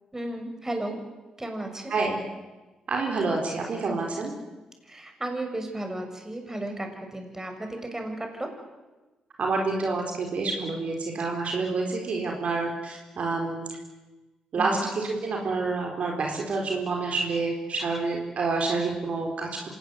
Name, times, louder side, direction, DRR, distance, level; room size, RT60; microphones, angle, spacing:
voice 1, 0.1-1.0 1.4-1.9 4.8-8.5 14.5-14.8, right 1 dB, 20° right, 4 dB, 6.7 m, -34 dB
voice 2, 1.9-2.2 2.9-4.3 9.4-13.7 14.5-19.5, right 3 dB, 60° right, 1 dB, 4.4 m, -28 dB
26.0 x 18.5 x 8.2 m, 1.2 s
hypercardioid pair, 45°, 3 cm